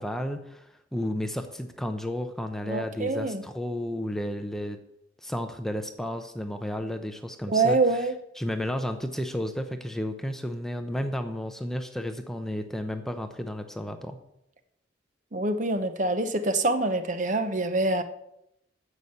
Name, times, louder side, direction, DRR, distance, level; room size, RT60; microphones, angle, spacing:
voice 1, 0.0-4.8 5.2-7.8 8.4-14.2, left 1 dB, ahead, 6 dB, 0.7 m, -32 dB
voice 2, 2.7-3.4 7.5-8.1 15.3-18.0, right 2 dB, 40° right, 10 dB, 0.8 m, -25 dB
9.6 x 7.1 x 8.0 m, 0.82 s
head